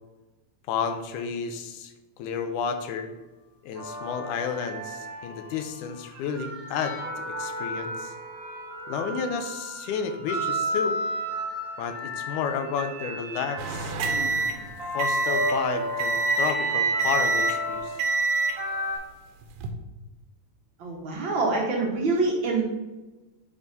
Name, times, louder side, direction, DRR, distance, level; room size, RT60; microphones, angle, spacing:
voice 1, 0.7-3.1 3.6-8.1 8.9-11.0 11.8-13.9 14.8-18.0, left 6 dB, 90° left, 7 dB, 2.1 m, -31 dB
sound 1, 3.8-5.6 6.2-19.0, right 1 dB, 40° right, 1.2 m, -32 dB
sound 2, 13.6-15.6 16.0-16.6 17.0-17.6 18.0-18.6 19.4-19.7, right 4 dB, 85° right, 2.2 m, -26 dB
voice 2, 20.8-22.6, right 3 dB, 70° right, -1 dB, 1.1 m, -25 dB
8.6 x 3.7 x 4.0 m, 1.1 s
omnidirectional pair, 3.4 m